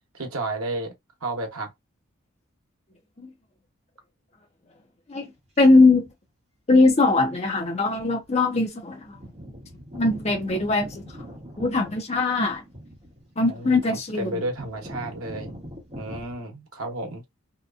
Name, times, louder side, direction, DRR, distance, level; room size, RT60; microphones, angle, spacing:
voice 1, 0.1-0.9 1.2-1.7 13.4-15.5 16.0-17.2, right 2 dB, 90° right, 0.9 m, -32 dB
voice 2, 5.6-6.1 6.7-9.2 9.9-11.0 11.6-12.6 13.4-14.4, left 3 dB, 30° left, 0.6 m, -20 dB
sound 1, 5.7-6.1 7.2-7.3 7.9-8.3 8.6-8.7 8.9-16.3, equal, 30° right, 1.1 m, -42 dB
2.8 x 2.2 x 2.5 m
head